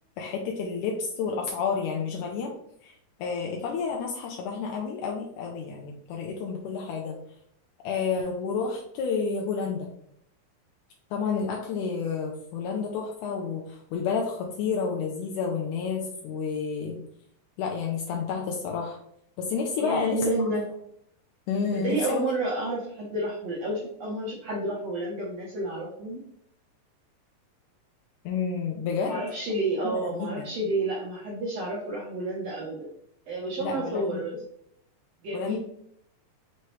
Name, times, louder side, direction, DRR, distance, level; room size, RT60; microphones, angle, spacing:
voice 1, 0.2-2.5 2.8-7.1 7.8-9.9 11.1-17.0 17.6-19.0 19.4-20.5 21.5-22.2 28.3-29.2 29.8-30.5 33.6-34.2 35.3-35.6, left 5 dB, 85° left, 0 dB, 1.8 m, -30 dB
voice 2, 19.8-20.6 21.7-26.2 29.0-32.9 33.3-34.4 35.2-35.6, right 1 dB, 85° right, -4 dB, 1.4 m, -30 dB
5.7 x 3.0 x 3.1 m, 0.72 s
omnidirectional pair, 4.1 m